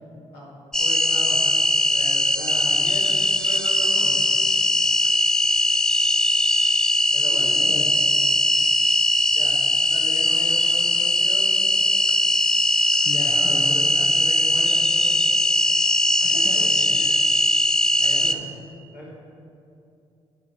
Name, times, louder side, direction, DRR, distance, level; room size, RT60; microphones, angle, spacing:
sound 1, 0.7-18.3, left 1 dB, 5° left, 0.5 m, -20 dB
voice 1, 0.8-4.2 4.6-4.7 7.1-7.5 9.3-9.6 9.9-12.0 13.3-15.2 16.2-17.1 18.0-18.5 18.9-19.1, equal, 80° left, -6 dB, 2.1 m, -38 dB
voice 2, 7.3-7.9 13.0-13.7 16.2-16.6 16.9-17.2, left 3 dB, 65° left, -4 dB, 1.1 m, -35 dB
10.0 x 4.0 x 6.0 m, 2.7 s
hypercardioid pair, 50°, 15 cm